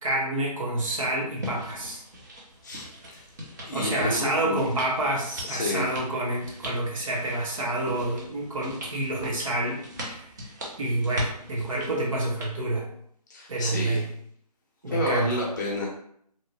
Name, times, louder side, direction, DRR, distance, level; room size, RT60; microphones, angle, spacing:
voice 1, 0.0-2.0 3.7-10.2 10.8-12.9 13.5-14.1 14.8-15.4, right 1 dB, 55° right, -2 dB, 1.0 m, -28 dB
sound 1, 1.4-12.5, equal, 25° right, 0.5 m, -40 dB
voice 2, 2.6-3.2 3.7-4.6 5.4-5.9 13.3-14.1 14.9-15.9, left 1 dB, 25° left, -3 dB, 0.7 m, -30 dB
2.9 x 2.2 x 2.7 m, 0.66 s
figure-of-eight pair, 155°, 21 cm